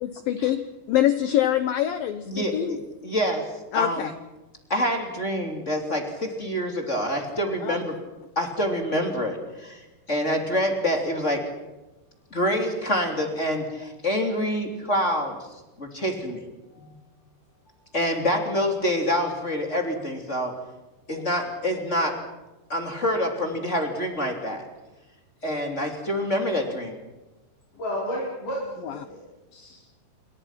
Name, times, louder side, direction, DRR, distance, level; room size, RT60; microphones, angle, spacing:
voice 1, 0.0-2.8 3.7-4.1 7.6-7.8 28.8-29.1, left 11 dB, 75° left, 11 dB, 2.1 m, -25 dB
voice 2, 2.3-2.8 3.0-4.1 4.7-7.9 8.3-11.4 12.3-15.4 15.8-16.4 16.8-16.9 17.9-20.5 21.1-22.2 22.7-24.6 25.4-27.0, equal, 20° left, 3 dB, 2.8 m, -26 dB
voice 3, 27.8-29.2 29.5-29.9, equal, 45° left, -4 dB, 6.3 m, -32 dB
27.5 x 24.5 x 6.0 m, 1.1 s
omnidirectional pair, 5.4 m